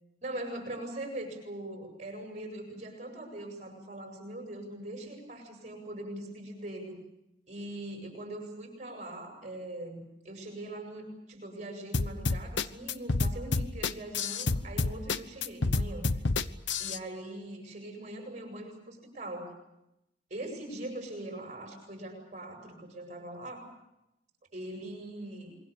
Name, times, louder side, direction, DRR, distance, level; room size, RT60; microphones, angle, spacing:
voice 1, 0.2-7.0 7.5-16.2 16.8-19.5 20.3-23.7 24.5-25.6, right 1 dB, 40° right, 3 dB, 8.0 m, -41 dB
sound 1, 11.9-17.0, left 3 dB, 75° left, 1.0 m, -29 dB
28.0 x 23.5 x 7.0 m, 0.86 s
head